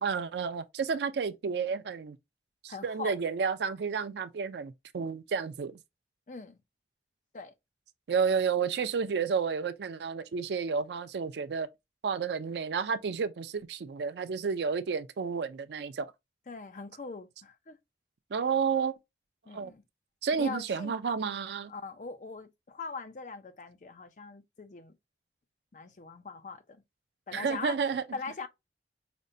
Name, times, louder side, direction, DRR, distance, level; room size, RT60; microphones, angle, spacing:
voice 1, 0.0-2.2 2.6-5.8 8.1-11.7 12.0-16.1 18.3-18.9 19.5-19.7 20.2-21.7 27.3-28.0, right 5 dB, 75° right, 0.4 m, -31 dB
voice 2, 2.7-3.2 6.3-6.6 7.3-7.5 16.5-17.8 19.5-19.8 20.4-20.9 21.7-24.9 25.7-26.8 27.3-28.5, left 4 dB, 45° left, 0.5 m, -41 dB
5.1 x 2.1 x 2.6 m
head